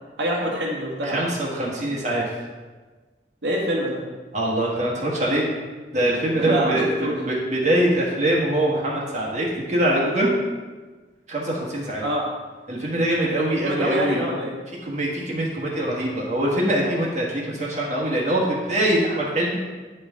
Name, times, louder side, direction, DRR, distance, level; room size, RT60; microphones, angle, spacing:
voice 1, 0.2-1.2 3.4-4.0 6.4-7.2 12.0-12.3 13.6-14.6, right 1 dB, 85° right, -3 dB, 1.8 m, -25 dB
voice 2, 1.0-2.3 4.3-5.4 5.9-10.3 11.3-12.0 12.7-14.2 14.8-19.6, right 1 dB, 40° right, -3 dB, 1.5 m, -23 dB
10.0 x 5.6 x 3.6 m, 1.3 s
head